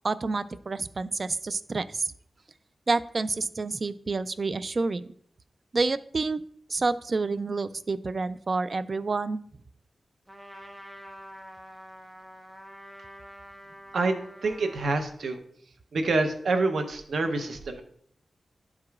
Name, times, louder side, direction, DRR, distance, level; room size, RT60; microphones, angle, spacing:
voice 1, 0.0-2.1 2.9-5.0 5.7-6.4 6.7-9.4, right 3 dB, 50° right, 14 dB, 0.3 m, -28 dB
Trumpet, 10.3-15.2, equal, 15° right, 0.9 m, -47 dB
voice 2, 14.4-15.4 15.9-17.8, right 3 dB, 85° right, 6 dB, 0.8 m, -27 dB
11.0 x 4.8 x 2.4 m, 0.64 s
wide cardioid pair, 75°, 0 cm